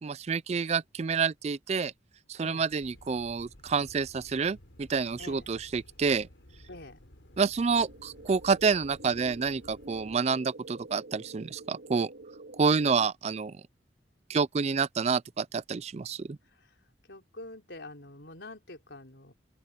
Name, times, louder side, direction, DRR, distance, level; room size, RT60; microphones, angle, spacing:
voice 1, 0.0-1.9 2.3-6.3 7.4-12.1 12.6-13.5 14.3-16.4, right 5 dB, 35° right, 0.4 m, -28 dB
sound 1, 2.7-10.2, equal, 90° left, 3.8 m, -54 dB
voice 2, 6.7-7.0 17.1-19.3, left 2 dB, 70° left, 4.3 m, -46 dB
sound 2, 7.7-13.1, right 2 dB, 90° right, 2.0 m, -48 dB
open air
head